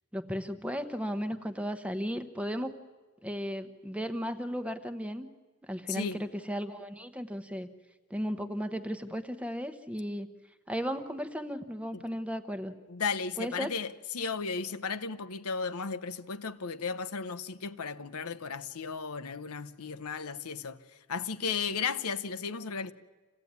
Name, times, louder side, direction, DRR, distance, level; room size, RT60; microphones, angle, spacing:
voice 1, 0.1-2.7 3.2-5.3 5.6-7.7 8.1-10.3 10.7-12.7 13.4-13.7, equal, 5° right, 0.9 m, -35 dB
voice 2, 5.9-6.2 11.9-12.0 12.9-20.8 21.1-22.9, left 5 dB, 80° left, 0.9 m, -35 dB
26.0 x 16.0 x 9.5 m
head